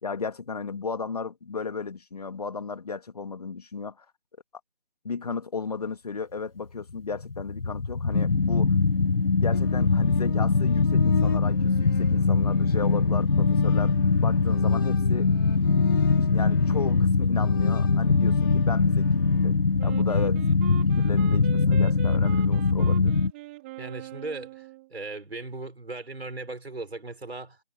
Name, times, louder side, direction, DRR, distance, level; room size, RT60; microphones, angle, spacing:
voice 1, 0.0-4.1 5.0-8.7 9.4-13.9 14.2-15.3 16.1-20.4 20.9-23.1, left 5 dB, 40° left, 1.9 m, -34 dB
sound 1, 6.9-23.3, left 4 dB, 65° left, 2.1 m, -22 dB
sound 2, 9.5-20.2, left 8 dB, 20° left, 3.4 m, -39 dB
Wind instrument woodwind instrument, 19.8-24.9, right 19 dB, 10° right, 4.8 m, -42 dB
voice 2, 23.8-27.6, right 3 dB, 80° right, 5.4 m, -38 dB
figure-of-eight pair, 170°, 31 cm